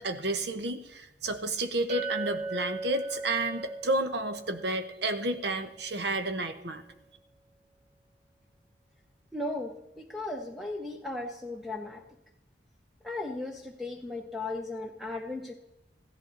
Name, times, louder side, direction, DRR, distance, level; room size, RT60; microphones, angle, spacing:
voice 1, 0.0-6.8, right 2 dB, 65° right, 8 dB, 1.1 m, -31 dB
Chink clink, 1.9-6.1, right 3 dB, 35° right, 1.7 m, -39 dB
voice 2, 9.3-12.0 13.0-15.5, left 2 dB, ahead, 2 dB, 0.8 m, -36 dB
15.5 x 11.0 x 4.0 m, 0.89 s
head